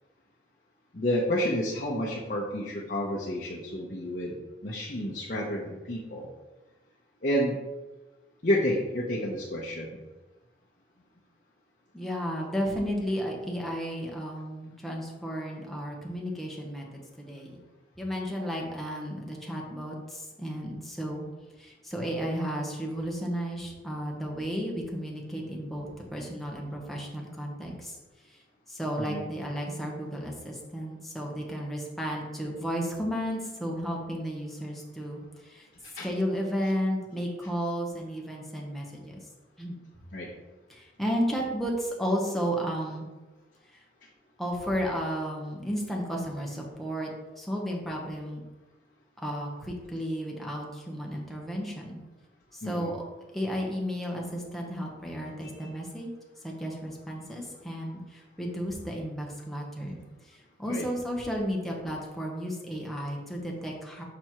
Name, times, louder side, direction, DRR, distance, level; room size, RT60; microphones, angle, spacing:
voice 1, 0.9-4.3 4.6-6.3 7.2-7.6 8.4-10.0 29.0-29.2 35.8-36.1 40.1-40.3 52.6-52.9 55.6-55.7 60.6-60.8, equal, 45° left, -4 dB, 0.8 m, -30 dB
voice 2, 11.9-17.6 18.0-21.2 21.6-28.0 28.2-28.4 28.7-35.7 36.0-39.2 39.6-39.8 40.7-43.1 43.7-43.8 44.4-47.1 47.4-48.4 49.2-52.0 52.5-53.0 53.3-56.1 56.4-64.0, equal, ahead, -2 dB, 1.1 m, -33 dB
6.1 x 4.4 x 4.6 m, 1.2 s
head